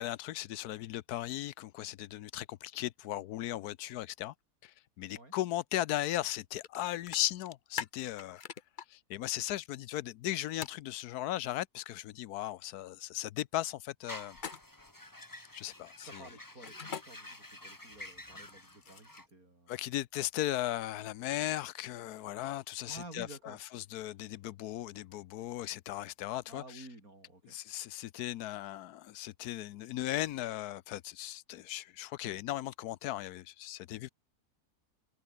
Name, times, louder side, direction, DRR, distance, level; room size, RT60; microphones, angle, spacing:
voice 1, 0.0-4.3 4.6-8.4 8.9-14.4 15.5-16.2 19.7-26.9 27.4-34.1, left 14 dB, 85° left, 1.2 m, -37 dB
sound 1, 6.6-6.8 7.1-8.9 10.6-10.8 14.3-14.9 16.6-17.0 18.4-19.3, left 7 dB, 40° left, 0.8 m, -42 dB
sound 2, 14.0-19.3, left 1 dB, 10° left, 2.3 m, -49 dB
voice 2, 16.1-20.0 22.8-23.6 26.5-27.6, right 2 dB, 65° right, 6.8 m, -51 dB
omnidirectional pair, 1.6 m